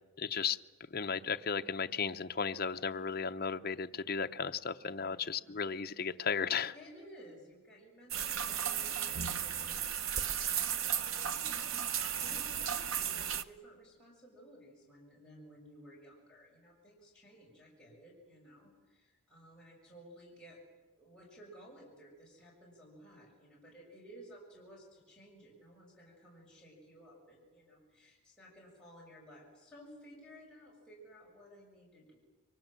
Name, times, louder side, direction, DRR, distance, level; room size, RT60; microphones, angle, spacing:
voice 1, 0.2-0.6 0.9-6.7, left 6 dB, 45° left, 6 dB, 0.7 m, -35 dB
voice 2, 6.7-20.6 20.9-32.2, equal, 5° left, -6 dB, 6.3 m, -56 dB
sound 1, 8.1-13.4, right 8 dB, 65° right, 0.9 m, -35 dB
27.5 x 24.0 x 7.5 m, 1.3 s
head